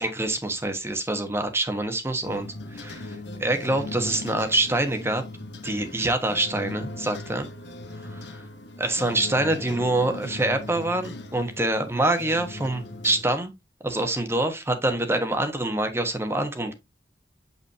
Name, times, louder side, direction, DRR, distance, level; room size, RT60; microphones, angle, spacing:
voice 1, 0.0-5.2 5.6-7.5 8.1-8.4 8.8-13.5 13.8-16.7, right 2 dB, 15° right, 1.2 m, -26 dB
sound 1, 2.2-13.2, left 2 dB, 80° left, 1.1 m, -38 dB
8.2 x 5.5 x 2.7 m
head